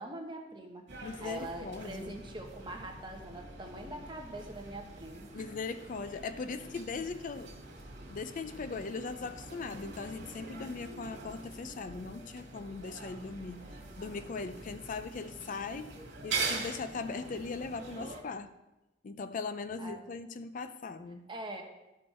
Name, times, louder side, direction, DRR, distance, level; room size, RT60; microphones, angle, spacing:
voice 1, 0.0-0.8 1.2-5.5 19.8-20.0 21.3-21.6, right 1 dB, 25° right, 2 dB, 1.2 m, -43 dB
sound 1, 0.9-18.2, right 4 dB, 70° right, 1.9 m, -43 dB
voice 2, 1.0-2.2 5.3-7.5 8.1-13.6 14.0-15.9 16.2-18.5 19.0-21.3, left 4 dB, 45° left, 11 dB, 0.4 m, -39 dB
12.5 x 5.4 x 4.3 m, 1.0 s
head